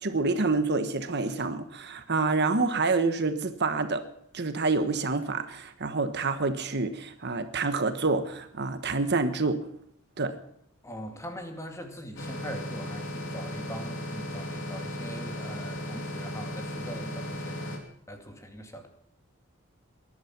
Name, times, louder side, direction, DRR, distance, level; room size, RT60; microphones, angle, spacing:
voice 1, 0.0-4.0 4.3-9.6 10.2-10.3, right 3 dB, 55° right, 9 dB, 1.3 m, -27 dB
voice 2, 10.8-17.7 18.1-18.9, equal, 15° left, 4 dB, 2.3 m, -42 dB
sound 1, 12.2-17.8, left 1 dB, 65° left, 3.1 m, -36 dB
21.0 x 11.5 x 6.0 m, 0.70 s
head